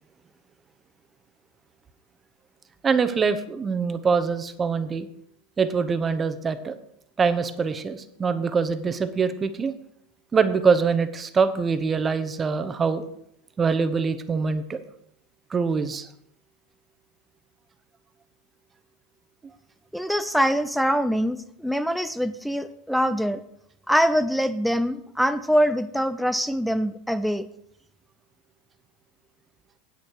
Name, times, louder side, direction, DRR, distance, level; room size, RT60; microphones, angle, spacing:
voice 1, 2.8-5.1 5.6-6.8 7.2-9.7 10.3-13.0 13.6-14.8 15.5-16.1, right 5 dB, 25° right, 10 dB, 0.9 m, -24 dB
voice 2, 19.9-23.4 23.9-27.5, equal, ahead, 12 dB, 0.5 m, -24 dB
9.5 x 8.3 x 4.7 m, 0.74 s
hypercardioid pair, 110°, 0 cm